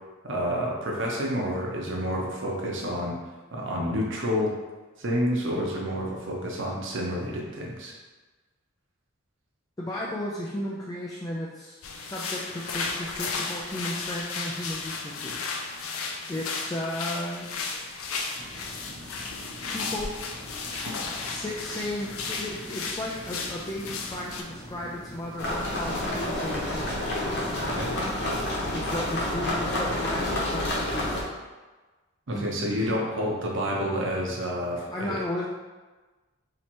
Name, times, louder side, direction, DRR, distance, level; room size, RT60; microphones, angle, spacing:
voice 1, 0.2-3.2 3.5-4.5 5.0-7.9 20.8-20.9 27.7-27.9 32.3-35.2, equal, 60° right, -2 dB, 0.8 m, -29 dB
voice 2, 9.8-15.9 16.3-17.5 19.7-20.1 21.3-27.0 28.7-31.2 32.3-32.9 34.9-35.5, left 1 dB, 15° left, -4 dB, 0.3 m, -35 dB
sound 1, 11.8-24.4, left 4 dB, 90° left, 0.5 m, -34 dB
sound 2, 18.3-29.3, equal, 10° right, 0.8 m, -44 dB
sound 3, 25.4-31.2, left 1 dB, 50° left, 0.9 m, -29 dB
3.1 x 2.9 x 4.4 m, 1.2 s
head